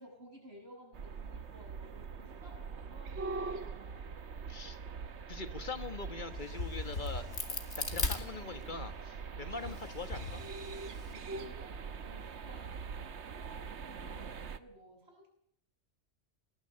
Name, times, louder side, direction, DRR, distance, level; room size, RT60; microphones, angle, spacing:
voice 1, 0.0-4.3 9.5-9.9 11.1-13.0 13.6-15.3, equal, 70° right, 1 dB, 7.8 m, -56 dB
sound 1, 0.9-14.6, right 5 dB, 90° right, 1.4 m, -43 dB
voice 2, 4.5-4.8 5.3-7.3 7.8-10.4, left 3 dB, 45° left, 9 dB, 1.5 m, -42 dB
Crack, 6.3-8.9 9.5-11.1, left 3 dB, 75° left, 2.5 m, -38 dB
20.0 x 13.5 x 9.9 m, 0.67 s
omnidirectional pair, 1.1 m